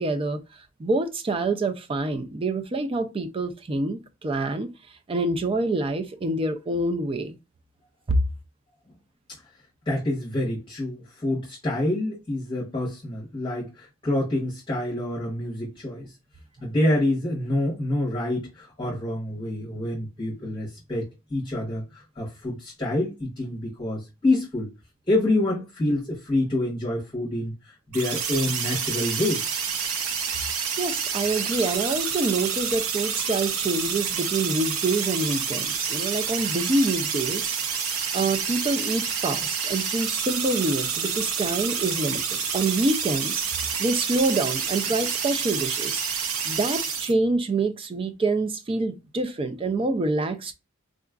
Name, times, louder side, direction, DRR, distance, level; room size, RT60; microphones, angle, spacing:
voice 1, 0.0-4.7 5.1-7.4 8.1-8.2 30.8-37.5 38.1-43.5 43.8-46.0 46.4-50.5, right 2 dB, 25° right, 0.3 m, -26 dB
voice 2, 9.9-16.1 16.6-24.7 25.1-29.4, left 1 dB, 20° left, 0.9 m, -27 dB
sound 1, 27.9-47.1, right 6 dB, 75° right, 0.6 m, -28 dB
3.7 x 2.4 x 2.3 m
head